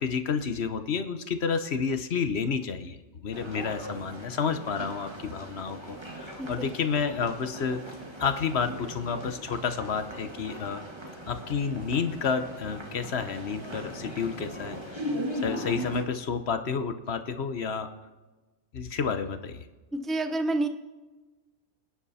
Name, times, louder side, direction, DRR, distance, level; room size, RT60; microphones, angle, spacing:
voice 1, 0.0-3.0 3.2-7.8 8.2-10.8 11.3-15.0 15.3-17.9 18.7-19.6, left 6 dB, 55° left, 9 dB, 1.1 m, -30 dB
sound 1, 3.3-16.0, equal, 20° right, 1.8 m, -39 dB
voice 2, 19.9-20.7, right 2 dB, ahead, 7 dB, 0.5 m, -28 dB
25.5 x 10.0 x 4.2 m, 1.2 s
omnidirectional pair, 1.4 m